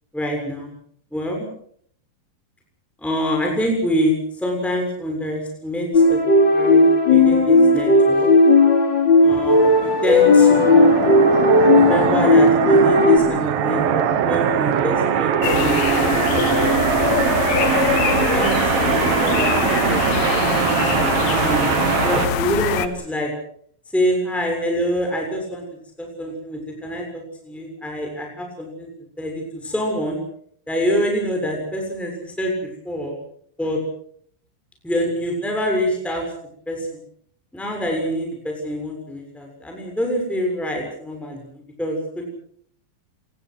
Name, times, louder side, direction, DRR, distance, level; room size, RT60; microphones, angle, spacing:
voice 1, 0.1-0.7 1.1-1.5 3.0-6.2 6.5-8.3 9.2-10.7 11.7-16.1 16.5-16.9 17.6-23.3 23.9-25.6 26.0-28.9 29.2-30.2 30.7-33.1 33.6-33.8 34.8-36.2 36.7-36.9 37.5-42.3, equal, ahead, 1 dB, 6.6 m, -26 dB
sound 1, 5.9-13.2, left 2 dB, 30° left, 3.9 m, -14 dB
sound 2, 9.5-22.3, right 9 dB, 70° right, 3.3 m, -21 dB
sound 3, 15.4-22.9, left 8 dB, 60° left, 2.3 m, -23 dB
27.5 x 21.5 x 6.4 m, 0.64 s
omnidirectional pair, 4.4 m